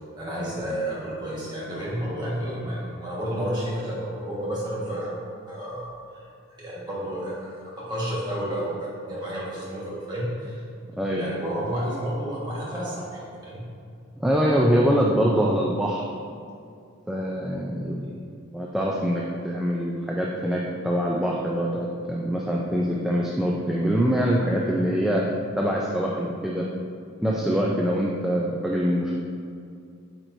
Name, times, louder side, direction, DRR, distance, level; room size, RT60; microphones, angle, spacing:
voice 1, 0.1-5.1 5.5-5.9 6.5-10.6 11.1-13.7 18.0-18.1, equal, 20° right, -7 dB, 1.4 m, -31 dB
voice 2, 14.2-16.0 17.1-18.0 18.5-25.3 25.6-26.7 27.2-29.1, equal, 5° right, -3 dB, 0.3 m, -24 dB
8.7 x 4.4 x 2.7 m, 2.4 s
head